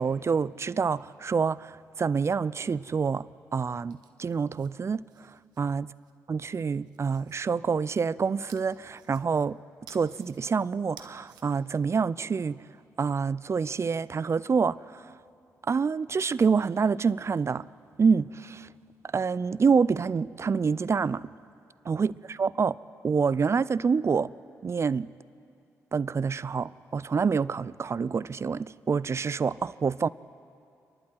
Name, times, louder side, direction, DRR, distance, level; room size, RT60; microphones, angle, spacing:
voice 1, 0.0-3.3 3.5-5.0 5.6-5.9 6.3-9.6 9.9-12.6 13.0-15.0 15.7-17.6 18.0-18.7 19.1-21.2 21.9-22.1 22.4-22.8 23.0-24.3 24.6-25.1 25.9-30.1, right 5 dB, 40° right, 20 dB, 0.5 m, -27 dB
sound 1, 3.7-6.1 6.6-7.5 8.5-9.5 9.9-10.4 10.8-11.4, right 8 dB, 75° right, 1.2 m, -55 dB
29.0 x 11.5 x 8.0 m, 2.5 s
hypercardioid pair, 45°, 7 cm